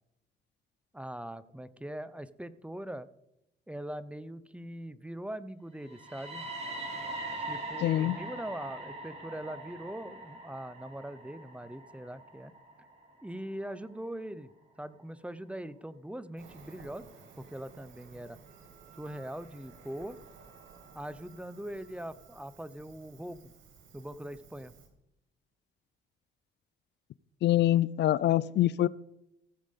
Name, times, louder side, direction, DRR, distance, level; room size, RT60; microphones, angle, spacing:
voice 1, 0.9-3.1 3.7-6.5 7.4-12.5 13.2-14.5 14.8-17.1 17.4-18.4 19.0-20.2 20.9-23.5 23.9-24.7, right 1 dB, 5° right, 15 dB, 0.7 m, -41 dB
sound 1, 5.8-13.7, right 2 dB, 30° right, 4.1 m, -42 dB
voice 2, 7.8-8.2 27.4-28.9, left 13 dB, 60° left, 21 dB, 0.4 m, -25 dB
Cricket, 16.4-24.9, right 5 dB, 85° right, 2.8 m, -55 dB
Wind instrument woodwind instrument, 18.4-22.5, right 10 dB, 70° right, 2.7 m, -62 dB
15.5 x 7.3 x 5.2 m, 0.83 s
cardioid pair, 90°, 20 cm